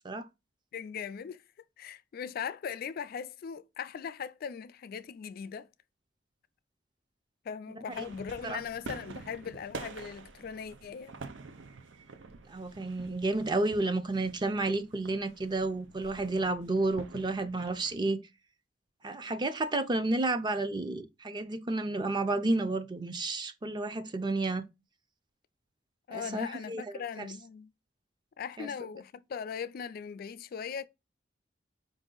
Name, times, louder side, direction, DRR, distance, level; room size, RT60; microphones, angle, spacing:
voice 1, 0.7-1.4 1.8-5.7 7.4-11.1 26.1-27.7 28.4-30.9, left 7 dB, 55° left, 0.3 m, -39 dB
sound 1, 7.9-18.0, right 4 dB, 85° right, 0.6 m, -47 dB
voice 2, 12.5-18.2 19.0-24.7 26.1-26.8 27.2-27.3 28.6-28.7, right 2 dB, 25° right, 0.5 m, -31 dB
4.8 x 2.6 x 3.8 m
head